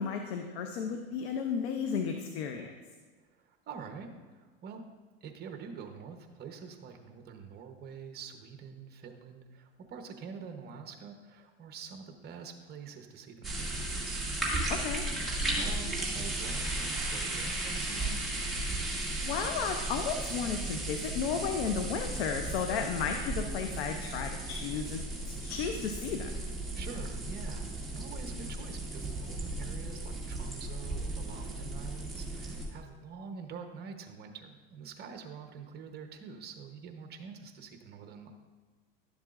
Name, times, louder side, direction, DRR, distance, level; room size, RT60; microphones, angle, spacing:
voice 1, 0.0-2.7 14.7-15.0 19.0-26.3, left 6 dB, 85° left, 5 dB, 0.8 m, -34 dB
voice 2, 3.2-4.8 5.2-14.2 15.5-18.2 22.5-22.9 26.7-38.3, right 6 dB, 35° right, 5 dB, 1.0 m, -46 dB
sound 1, 13.4-32.6, right 2 dB, ahead, 2.0 m, -35 dB
11.5 x 7.3 x 2.5 m, 1.4 s
supercardioid pair, 125°, 30 cm